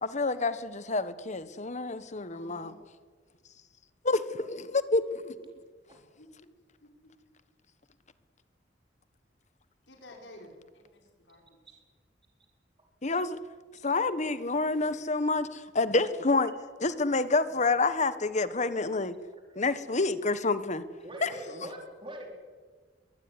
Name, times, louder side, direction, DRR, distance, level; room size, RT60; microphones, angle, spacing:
voice 1, 0.0-2.7 4.0-5.3 13.0-13.4 13.8-16.5 16.8-19.1 19.5-20.8 21.2-21.3, left 3 dB, 40° left, 13 dB, 1.4 m, -28 dB
voice 2, 2.3-2.8 6.2-6.3 6.8-7.1 9.9-11.4, left 1 dB, 75° left, 1 dB, 5.6 m, -51 dB
voice 3, 21.0-22.3, right 1 dB, 30° right, 2 dB, 4.2 m, -42 dB
23.0 x 19.0 x 9.9 m, 1.5 s
head